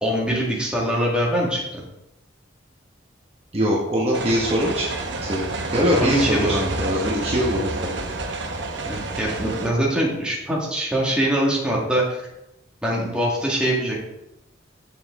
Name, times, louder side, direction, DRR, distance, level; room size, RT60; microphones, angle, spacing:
voice 1, 0.0-1.8 5.7-6.9 8.8-12.2 12.8-14.0, right 1 dB, 5° right, -4 dB, 1.7 m, -23 dB
voice 2, 3.5-4.9 5.2-8.0, equal, 30° right, -4 dB, 1.1 m, -22 dB
sound 1, 4.1-9.7, right 2 dB, 65° right, 0.9 m, -29 dB
7.4 x 7.0 x 3.6 m, 0.88 s
head